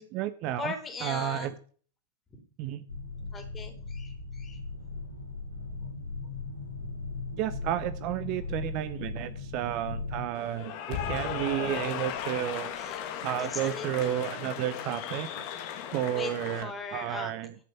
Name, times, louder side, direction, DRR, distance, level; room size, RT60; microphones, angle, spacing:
voice 1, 0.0-0.7 1.0-1.5 2.6-2.8 7.4-15.4 15.9-17.5, right 12 dB, 40° right, 13 dB, 0.8 m, -32 dB
voice 2, 0.6-1.5 3.3-4.6 12.7-13.0 13.4-14.2 16.1-16.3 16.6-17.3, left 4 dB, 20° left, 4 dB, 3.5 m, -38 dB
sound 1, 2.9-10.2, left 3 dB, 90° right, 3.2 m, -38 dB
Cheering / Applause, 10.3-16.6, left 9 dB, 45° left, 1.9 m, -36 dB
13.5 x 6.3 x 7.2 m, 0.44 s
figure-of-eight pair, 90°, 0 cm